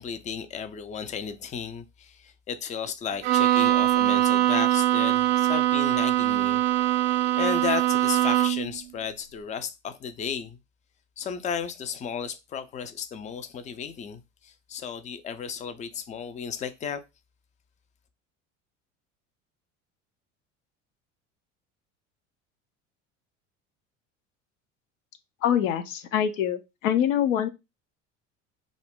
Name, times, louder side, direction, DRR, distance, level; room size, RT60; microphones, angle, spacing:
voice 1, 0.0-6.6 7.4-10.6 11.2-17.0, left 7 dB, 20° left, 0.3 m, -34 dB
Bowed string instrument, 3.2-8.7, right 15 dB, 65° right, 0.5 m, -22 dB
voice 2, 25.4-27.5, left 9 dB, 80° left, 0.5 m, -25 dB
2.4 x 2.0 x 3.5 m
hypercardioid pair, 75°, 38 cm